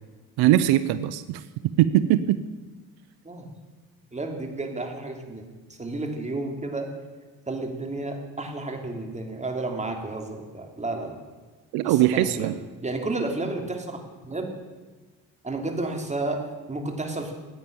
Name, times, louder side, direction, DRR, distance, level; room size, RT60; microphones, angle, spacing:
voice 1, 0.4-1.4 1.8-2.4 11.7-12.5, right 13 dB, 85° right, 13 dB, 0.8 m, -21 dB
voice 2, 4.1-5.5 5.8-6.9 7.5-11.2 11.8-12.5 12.8-14.0 14.2-14.5 15.4-17.3, right 2 dB, 20° right, 3 dB, 3.1 m, -31 dB
15.5 x 9.6 x 8.9 m, 1.3 s
cardioid pair, 85°, 37 cm